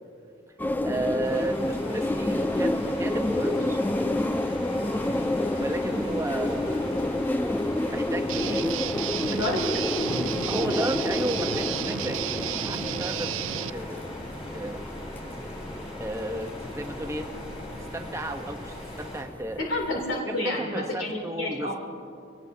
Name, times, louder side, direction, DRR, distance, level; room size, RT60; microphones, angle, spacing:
sound 1, 0.6-20.2, left 1 dB, 10° left, 0.3 m, -30 dB
voice 1, 0.8-3.8 5.6-6.9 7.8-8.8 9.3-9.4 10.5-13.3 13.7-14.1 14.5-14.8 16.0-17.3 17.9-19.6 20.3-21.8, right 1 dB, 15° right, 4 dB, 0.9 m, -33 dB
sound 2, 1.2-19.2, left 1 dB, 30° left, 4.2 m, -39 dB
Guitar, 8.3-13.7, right 11 dB, 80° right, 0.4 m, -32 dB
voice 2, 9.3-9.6 9.9-10.3 19.6-21.7, left 1 dB, 80° left, -2 dB, 3.0 m, -30 dB
24.0 x 18.0 x 2.8 m, 2.5 s
head